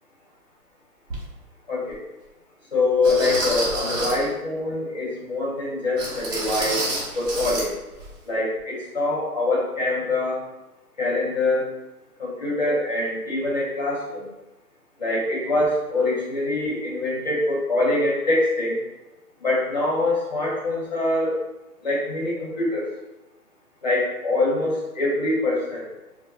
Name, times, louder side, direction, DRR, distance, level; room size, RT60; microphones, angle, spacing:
sound 1, 1.1-1.2 1.9-2.0 3.0-4.3 6.0-7.7 8.0-8.1 8.6-8.7, right 2 dB, 55° right, 1.1 m, -28 dB
voice 1, 1.7-2.0 2.7-6.8 7.1-7.7 8.3-10.4 11.0-11.7 12.2-14.2 15.0-18.8 19.4-21.4 21.8-22.8 23.8-25.9, left 2 dB, 30° left, -5 dB, 0.6 m, -24 dB
4.2 x 2.1 x 2.3 m, 1.0 s
hypercardioid pair, 165°, 47 cm